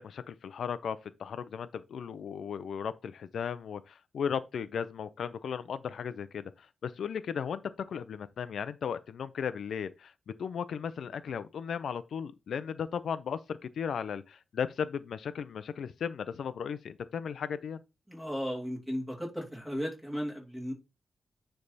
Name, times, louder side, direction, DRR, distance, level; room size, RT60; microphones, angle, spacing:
voice 1, 0.0-7.6 7.9-10.1 10.4-17.8, left 7 dB, 75° left, 0.4 m, -36 dB
voice 2, 18.1-20.7, equal, 5° right, 3.0 m, -35 dB
9.6 x 3.4 x 4.0 m
wide cardioid pair, 130°, 0 cm